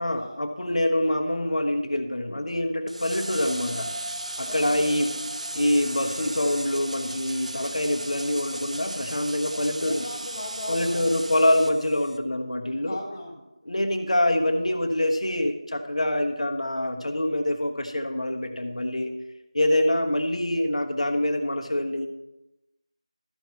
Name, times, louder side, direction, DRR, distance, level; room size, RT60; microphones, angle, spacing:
voice 1, 0.0-3.9 4.4-5.1 5.5-10.0 10.7-13.0 13.7-19.1 19.5-22.1, left 1 dB, 70° left, 4 dB, 1.3 m, -25 dB
sound 1, 2.9-12.2, right 1 dB, 85° right, 0.8 m, -35 dB
voice 2, 4.4-5.1 9.4-11.3 12.8-13.5, left 1 dB, 15° left, -5 dB, 1.2 m, -38 dB
13.5 x 4.6 x 5.7 m, 0.95 s
figure-of-eight pair, 175°, 4 cm